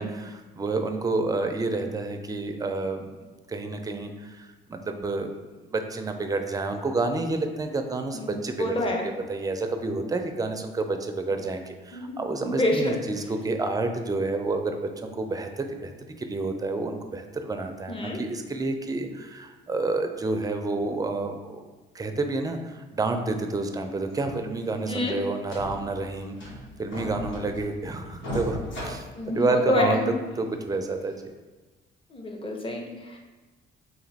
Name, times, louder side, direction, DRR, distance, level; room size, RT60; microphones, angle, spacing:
voice 1, 0.0-3.2 3.5-5.3 5.7-15.9 16.2-21.7 21.9-26.5 26.8-30.0 30.4-31.2, right 3 dB, 20° right, 6 dB, 0.4 m, -29 dB
voice 2, 8.1-9.1 11.9-12.9 17.9-18.2 24.9-25.2 29.2-30.1 32.1-33.2, left 1 dB, 25° left, 1 dB, 0.7 m, -27 dB
sound 1, 24.1-24.3 24.6-24.7 25.0-25.1 25.5-26.0 26.4-27.8 28.2-29.8 30.3-30.4 31.0-31.1, equal, 75° left, 1.3 m, -36 dB
2.9 x 2.9 x 4.0 m, 1.2 s
cardioid pair, 90°, 20 cm